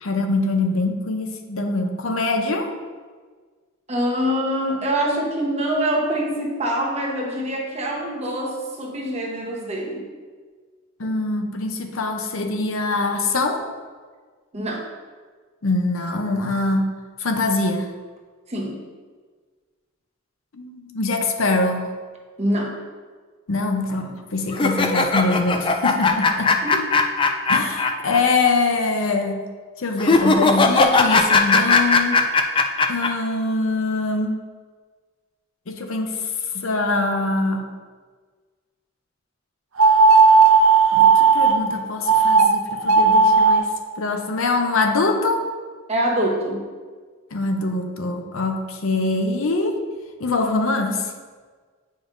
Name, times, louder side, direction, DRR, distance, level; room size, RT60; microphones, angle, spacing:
voice 1, 0.0-2.7 11.0-13.6 15.6-16.9 17.2-17.9 20.5-21.9 23.5-26.5 27.5-29.4 29.8-32.2 32.9-34.4 35.7-36.2 36.5-37.7 40.9-43.7 44.0-45.5 47.3-49.8 50.2-51.1, left 3 dB, 75° left, 5 dB, 0.7 m, -23 dB
voice 2, 3.9-10.0 11.0-11.1 14.5-14.9 18.5-18.8 22.4-22.7 26.6-27.0 45.9-46.7, equal, 30° right, -1 dB, 1.0 m, -25 dB
sound 1, 24.5-28.2 28.5-28.6 30.0-33.1, left 3 dB, 25° left, 0.3 m, -18 dB
sound 2, 39.8-41.6 42.0-42.4 42.8-43.6, right 4 dB, 80° right, 0.7 m, -14 dB
8.9 x 5.1 x 2.6 m, 1.5 s
head